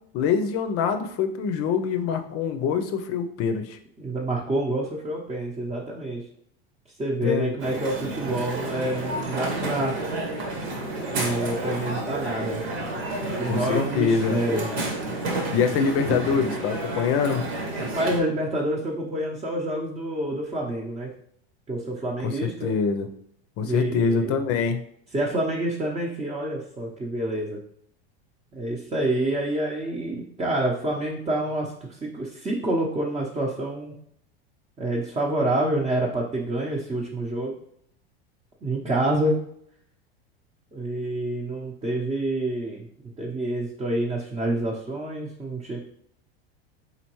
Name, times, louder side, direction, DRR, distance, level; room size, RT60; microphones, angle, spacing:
voice 1, 0.1-3.8 7.2-7.5 13.5-14.4 15.5-17.4 22.2-23.1 23.6-24.8, left 6 dB, 50° left, 7 dB, 0.6 m, -24 dB
voice 2, 4.0-6.2 7.0-10.0 11.1-12.6 13.3-14.7 17.8-21.1 21.7-22.7 23.6-24.4 25.1-27.6 28.5-33.9 34.8-37.5 38.6-39.4 40.7-42.9 43.2-45.8, right 1 dB, 20° right, -3 dB, 0.8 m, -27 dB
Crowd, 7.6-18.2, right 2 dB, 80° right, 1.5 m, -30 dB
4.3 x 4.0 x 3.0 m, 0.68 s
hypercardioid pair, 105°, 31 cm